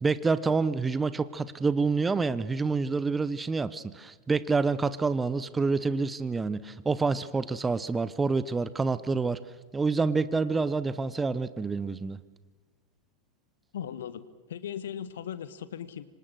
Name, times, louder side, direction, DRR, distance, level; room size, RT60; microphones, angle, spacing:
voice 1, 0.0-9.4 9.7-12.2, right 4 dB, 15° right, 15 dB, 0.9 m, -27 dB
voice 2, 13.7-16.0, left 9 dB, 60° left, 15 dB, 1.4 m, -38 dB
26.5 x 25.5 x 6.5 m, 1.3 s
figure-of-eight pair, 90°, 0 cm